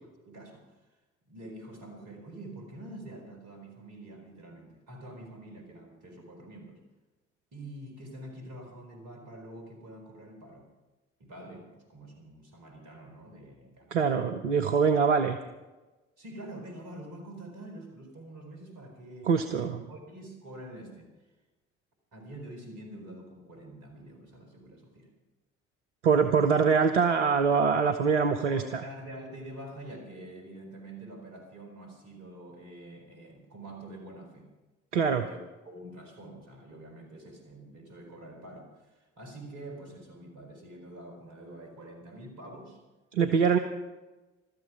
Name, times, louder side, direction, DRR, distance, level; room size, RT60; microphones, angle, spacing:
voice 1, 0.2-0.8 1.3-6.8 7.5-10.7 11.2-14.4 14.8-14.9 16.2-21.1 22.1-25.1 28.4-34.5 35.0-35.4 35.6-42.8, right 1 dB, 55° right, 3 dB, 4.3 m, -46 dB
voice 2, 13.9-15.4 19.3-19.9 26.0-28.8 34.9-35.3 43.1-43.6, right 6 dB, 80° right, 6 dB, 0.7 m, -24 dB
15.0 x 13.0 x 6.0 m, 1.1 s
figure-of-eight pair, 45°, 35 cm